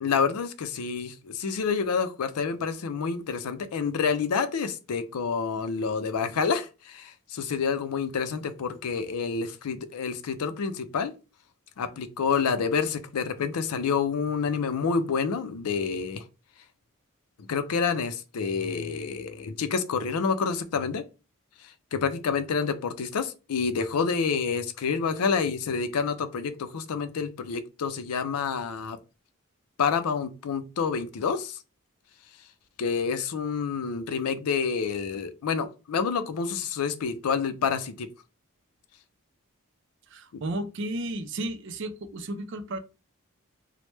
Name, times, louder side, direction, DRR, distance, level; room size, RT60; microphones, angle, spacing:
voice 1, 0.0-11.1 11.8-16.2 17.5-21.0 21.9-29.0 29.8-31.6 32.8-38.1 40.3-40.4, left 5 dB, 90° left, 0.4 m, -28 dB
voice 2, 40.1-42.8, right 1 dB, 55° right, 0.4 m, -33 dB
3.1 x 2.1 x 3.1 m
head